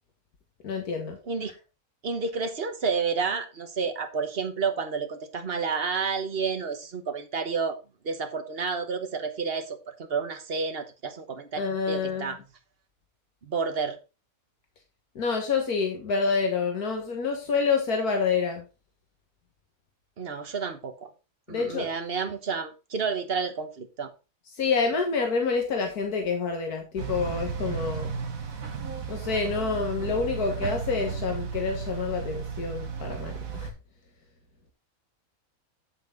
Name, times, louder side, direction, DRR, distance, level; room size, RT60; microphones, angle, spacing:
voice 1, 0.6-1.2 11.6-12.4 15.2-18.6 21.5-21.9 24.6-28.1 29.1-33.7, left 5 dB, 85° left, 2.0 m, -27 dB
voice 2, 2.0-7.8 8.0-11.6 11.9-12.4 13.4-14.0 20.2-21.1 21.5-24.1, right 5 dB, 45° right, 1.4 m, -30 dB
sound 1, 27.0-33.7, right 6 dB, 65° right, 1.7 m, -34 dB
8.4 x 7.8 x 3.8 m
omnidirectional pair, 1.5 m